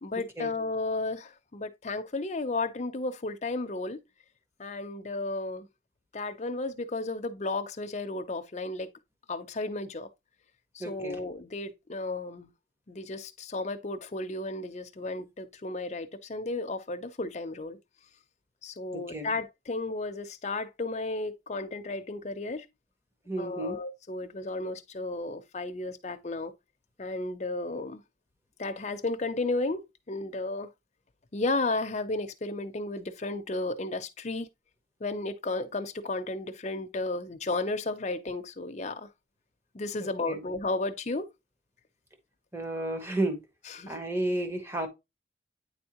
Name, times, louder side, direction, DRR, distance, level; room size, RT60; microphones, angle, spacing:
voice 1, 0.0-4.0 4.6-5.7 6.1-8.9 9.3-10.1 10.7-12.5 12.9-17.8 18.6-22.7 23.4-26.5 27.0-28.0 28.6-30.7 31.3-34.5 35.0-39.1 39.7-41.3 43.8-43.9, left 2 dB, 40° left, 0.6 m, -33 dB
voice 2, 10.8-11.2 18.9-19.4 23.3-23.8 40.0-40.4 42.5-43.4 43.9-44.9, right 1 dB, 15° right, 1.1 m, -32 dB
9.3 x 3.6 x 2.9 m
head